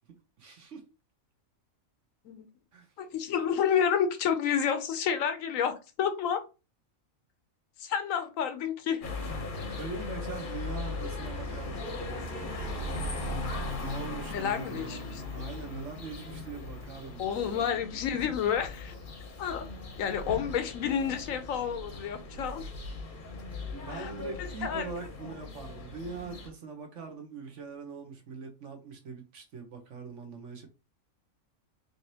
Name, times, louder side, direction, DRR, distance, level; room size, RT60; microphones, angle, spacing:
voice 1, 0.4-0.9 2.7-2.9 9.7-12.2 13.8-17.2 23.8-30.7, right 5 dB, 60° right, 1.3 m, -42 dB
voice 2, 3.0-6.4 7.8-9.1 14.3-15.5 17.2-18.9 19.4-19.7 20.0-22.7 23.9-24.1 24.4-24.9, left 8 dB, 75° left, 1.0 m, -30 dB
sound 1, 9.0-26.5, left 2 dB, 45° left, 0.8 m, -38 dB
4.1 x 3.2 x 2.7 m
omnidirectional pair, 1.5 m